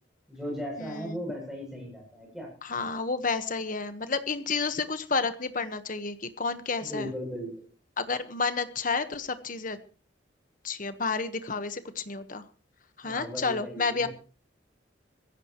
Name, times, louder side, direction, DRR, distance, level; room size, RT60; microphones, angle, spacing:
voice 1, 0.3-2.5 6.8-7.7 13.0-14.1, equal, ahead, 0 dB, 7.5 m, -37 dB
voice 2, 0.8-1.2 2.6-7.1 8.0-9.8 10.6-12.4 13.0-14.1, left 4 dB, 45° left, 10 dB, 1.3 m, -30 dB
21.5 x 16.0 x 3.1 m, 0.37 s
head